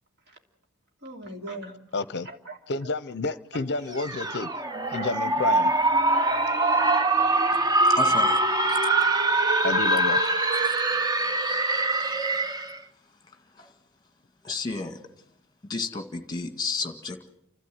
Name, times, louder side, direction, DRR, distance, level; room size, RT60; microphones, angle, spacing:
voice 1, 1.0-1.8 2.2-2.6 3.5-3.6 4.9-5.1 7.5-7.6 9.2-9.7, right 2 dB, 50° right, 2 dB, 2.9 m, -41 dB
voice 2, 1.9-2.3 2.7-4.5 4.9-5.7 9.6-10.2, left 3 dB, 50° left, 16 dB, 0.7 m, -30 dB
sound 1, 3.9-12.8, right 2 dB, 20° right, 0.8 m, -23 dB
voice 3, 8.0-8.4 8.7-8.8 10.6-10.7 13.6-13.7 14.4-15.0 15.7-17.3, left 4 dB, 20° left, 7 dB, 1.8 m, -32 dB
29.5 x 13.0 x 7.8 m, 0.83 s
head